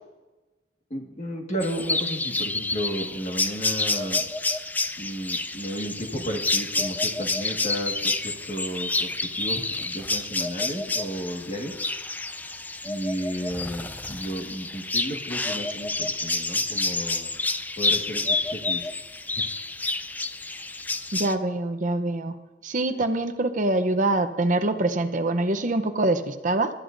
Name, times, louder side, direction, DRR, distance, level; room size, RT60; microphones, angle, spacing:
voice 1, 0.9-4.2 5.0-11.7 12.8-17.3 17.8-18.8 19.3-19.4 22.9-23.0, equal, 40° left, 3 dB, 1.7 m, -33 dB
sound 1, 1.6-21.3, left 3 dB, 10° left, 0.4 m, -29 dB
voice 2, 21.1-22.3 22.6-26.7, right 2 dB, 45° right, 9 dB, 0.7 m, -24 dB
23.0 x 13.0 x 2.6 m, 1.2 s
head